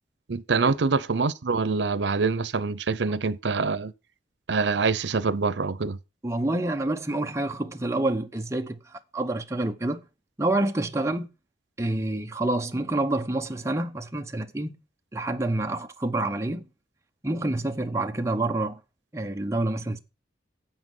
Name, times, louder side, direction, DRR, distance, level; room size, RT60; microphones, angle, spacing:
voice 1, 0.3-3.9 4.5-6.0, right 4 dB, 90° right, 0.7 m, -25 dB
voice 2, 6.2-8.8 9.1-10.0 10.4-11.3 11.8-14.8 15.1-16.7 17.2-18.8 19.1-20.0, right 2 dB, 15° right, 0.7 m, -27 dB
8.0 x 7.5 x 6.1 m
head